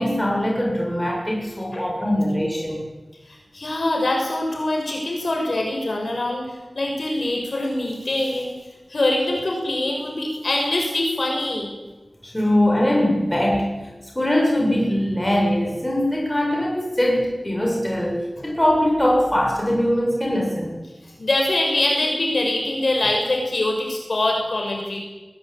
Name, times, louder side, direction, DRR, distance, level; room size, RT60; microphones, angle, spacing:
voice 1, 0.0-2.8 12.2-13.7 14.2-20.8, left 1 dB, 15° left, -1 dB, 7.1 m, -21 dB
voice 2, 3.3-8.5 8.9-11.7 21.2-25.0, left 1 dB, 65° left, 1 dB, 6.6 m, -24 dB
21.0 x 21.0 x 9.1 m, 1.2 s
wide cardioid pair, 75°, 0 cm